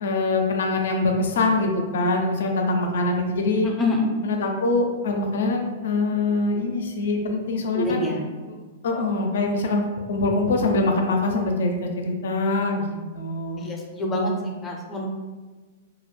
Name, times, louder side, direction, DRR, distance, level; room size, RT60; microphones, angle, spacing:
voice 1, 0.0-3.7 4.2-8.1 8.8-9.8 10.1-13.7, left 2 dB, 70° left, 3 dB, 0.4 m, -24 dB
voice 2, 3.6-4.1 7.7-8.2 13.6-14.3 14.6-15.1, left 2 dB, 20° left, 0 dB, 0.5 m, -26 dB
2.3 x 2.0 x 3.1 m, 1.4 s
hypercardioid pair, 120°, 0 cm